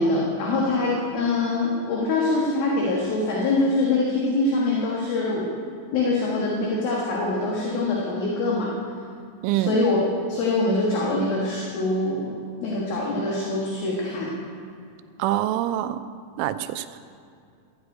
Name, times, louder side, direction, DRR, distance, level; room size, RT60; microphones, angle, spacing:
voice 1, 0.0-5.5 5.9-8.7 9.5-10.0 10.3-12.3 12.6-14.3, left 2 dB, 60° left, -4 dB, 3.0 m, -24 dB
voice 2, 9.4-9.8 15.2-16.0 16.4-17.0, right 13 dB, 85° right, 11 dB, 3.0 m, -25 dB
14.0 x 8.1 x 9.3 m, 2.4 s
omnidirectional pair, 5.6 m